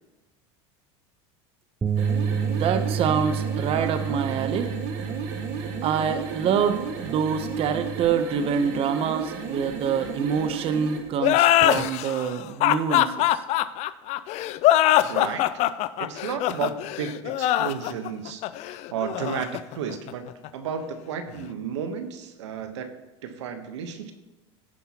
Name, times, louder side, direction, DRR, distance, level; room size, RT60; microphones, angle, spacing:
Bass guitar, 1.8-8.1, right 6 dB, 15° right, 0.5 m, -30 dB
sound 1, 1.9-11.1, right 5 dB, 60° right, 1.8 m, -34 dB
voice 1, 2.6-4.7 5.8-13.3, right 7 dB, 40° right, 9 dB, 0.8 m, -26 dB
sound 2, 11.2-20.5, left 14 dB, 50° left, 0.5 m, -22 dB
voice 2, 15.1-15.4 16.0-18.4 18.7-20.2 20.5-22.9 23.2-24.1, right 7 dB, 85° right, 8 dB, 1.2 m, -33 dB
16.5 x 5.5 x 3.0 m, 1.1 s
supercardioid pair, 115°, 15 cm